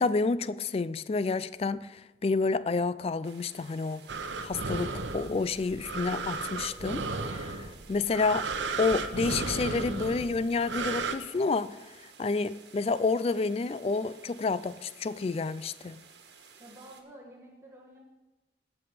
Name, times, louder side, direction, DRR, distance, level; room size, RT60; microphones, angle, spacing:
voice 1, 0.0-4.0 4.4-8.5 8.8-11.8 12.2-16.0, left 4 dB, 30° left, 0.3 m, -29 dB
sound 1, 3.2-17.0, right 5 dB, 65° right, 1.5 m, -55 dB
sound 2, 4.1-11.2, right 4 dB, 85° right, 0.9 m, -34 dB
voice 2, 16.6-18.0, right 1 dB, 15° right, 1.5 m, -50 dB
17.0 x 6.1 x 5.0 m
head